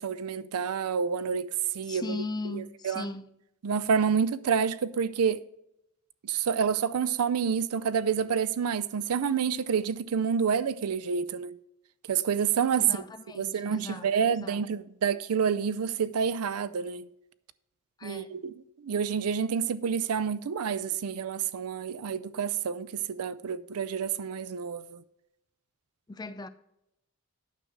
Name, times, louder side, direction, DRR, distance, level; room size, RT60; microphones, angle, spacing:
voice 1, 0.0-3.1 3.6-5.4 6.2-11.6 12.1-13.0 13.3-17.1 18.0-18.6 18.8-25.0, right 7 dB, 85° right, 0.5 m, -28 dB
voice 2, 1.9-3.3 12.8-14.1 14.4-14.6 18.0-18.3 26.1-26.5, left 3 dB, 20° left, 0.4 m, -38 dB
9.2 x 6.5 x 4.7 m
head